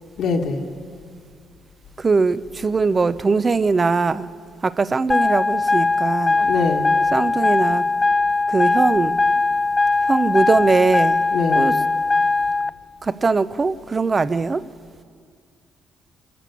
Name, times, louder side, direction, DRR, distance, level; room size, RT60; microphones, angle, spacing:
voice 1, 0.2-0.6 6.3-6.9 11.3-11.7, left 4 dB, 70° left, 2.0 m, -23 dB
voice 2, 2.0-4.3 4.6-6.4 7.1-7.9 8.5-9.2 10.0-11.2 11.5-11.8 13.0-14.6, right 4 dB, 30° right, 0.7 m, -20 dB
sound 1, 5.1-12.7, left 3 dB, 20° left, 0.5 m, -20 dB
26.0 x 12.0 x 8.4 m
cardioid pair, 90°, 0 cm